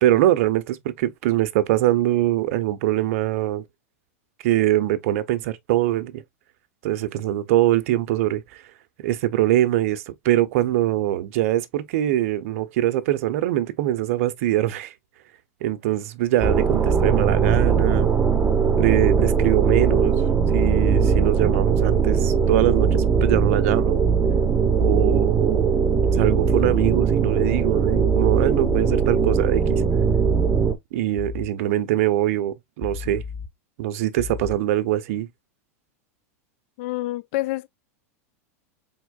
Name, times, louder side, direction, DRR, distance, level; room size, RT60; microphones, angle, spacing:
voice 1, 0.0-3.6 4.4-6.2 6.8-8.6 9.0-14.9 15.6-18.1 18.8-20.1 20.5-24.0 24.8-25.8 26.1-29.8 30.9-33.2 33.8-35.3, right 14 dB, 60° right, 0.7 m, -23 dB
sound 1, 16.4-30.7, right 6 dB, 15° right, 0.7 m, -20 dB
sound 2, 18.4-19.5 20.6-21.5 23.2-23.5 24.8-25.5 26.2-27.5 28.6-29.5 31.2-31.5 32.8-33.5 34.2-34.6, left 5 dB, 10° left, 0.9 m, -33 dB
voice 2, 36.8-37.7, left 17 dB, 55° left, 0.3 m, -27 dB
4.4 x 3.6 x 2.3 m
hypercardioid pair, 110°, 8 cm